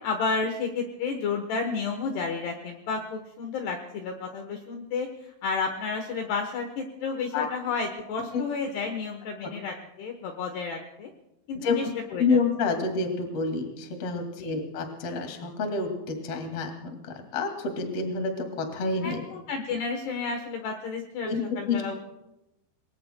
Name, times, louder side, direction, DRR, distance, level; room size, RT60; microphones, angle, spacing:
voice 1, 0.0-5.1 5.4-11.1 11.5-12.4 14.4-14.6 19.0-22.0, left 4 dB, 70° left, 4 dB, 2.7 m, -31 dB
voice 2, 12.2-17.0 17.3-19.2 21.2-21.4 21.7-21.8, left 4 dB, 45° left, 4 dB, 2.3 m, -28 dB
27.5 x 21.5 x 2.2 m, 0.93 s
omnidirectional pair, 5.7 m